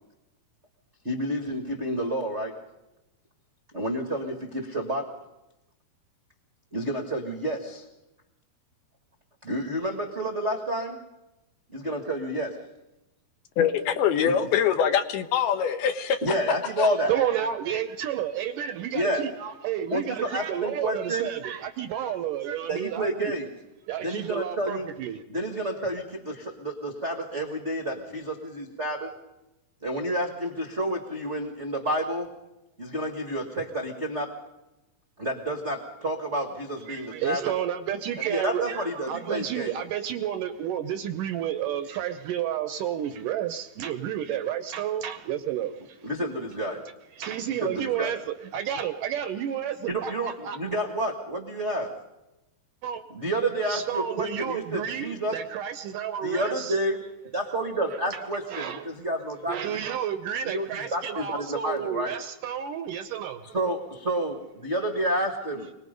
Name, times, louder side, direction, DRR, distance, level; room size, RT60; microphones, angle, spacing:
voice 1, 1.0-2.6 3.7-5.1 6.7-7.8 9.4-11.0 11.7-12.6 14.2-14.3 16.2-17.1 18.9-19.2 19.9-21.3 22.7-23.5 24.0-24.9 25.3-29.1 29.8-32.3 32.8-34.3 35.2-37.5 38.3-39.7 46.0-46.8 47.6-48.1 49.9-52.0 53.1-55.4 56.2-57.0 57.3-59.8 60.5-62.1 63.4-65.7, right 1 dB, 45° right, 4 dB, 0.8 m, -29 dB
voice 2, 13.6-16.2 16.8-16.9, left 8 dB, 80° left, 9 dB, 3.1 m, -23 dB
voice 3, 16.8-23.4 23.9-25.2 36.9-46.0 47.2-50.6 52.8-53.0 53.7-56.8 58.1-58.2 58.5-58.9 59.5-63.4 64.8-64.9, right 10 dB, 75° right, 9 dB, 2.0 m, -31 dB
26.0 x 19.5 x 5.3 m, 0.96 s
omnidirectional pair, 4.5 m